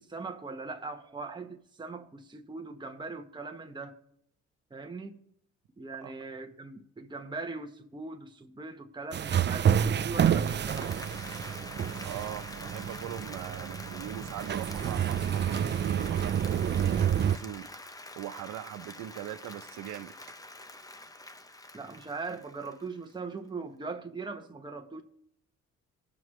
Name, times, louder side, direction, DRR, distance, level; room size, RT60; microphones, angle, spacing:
voice 1, 0.0-4.0 4.7-5.2 5.8-10.9 21.7-25.0, right 3 dB, 15° right, 1.0 m, -40 dB
sound 1, 9.1-17.4, right 9 dB, 35° right, 0.5 m, -29 dB
Applause, 10.1-23.1, left 2 dB, 10° left, 0.7 m, -46 dB
voice 2, 12.0-20.1, right 12 dB, 85° right, 0.8 m, -41 dB
18.0 x 6.2 x 3.2 m
cardioid pair, 90°, 30 cm